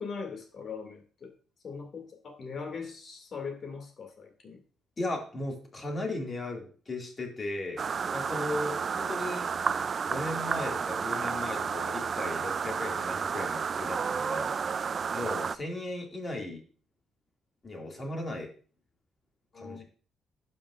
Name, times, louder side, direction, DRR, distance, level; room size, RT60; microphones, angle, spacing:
voice 1, 0.0-1.3 1.6-4.6 19.5-19.8, left 5 dB, 55° left, 3 dB, 2.2 m, -40 dB
voice 2, 5.0-7.9 8.1-9.5 10.0-14.6 15.1-16.6 17.6-18.5 19.5-19.8, left 1 dB, 35° left, 1 dB, 2.2 m, -36 dB
sound 1, 7.8-15.6, right 6 dB, 45° right, 0.3 m, -31 dB
11.5 x 5.4 x 2.4 m, 0.40 s
cardioid pair, 90°, 0 cm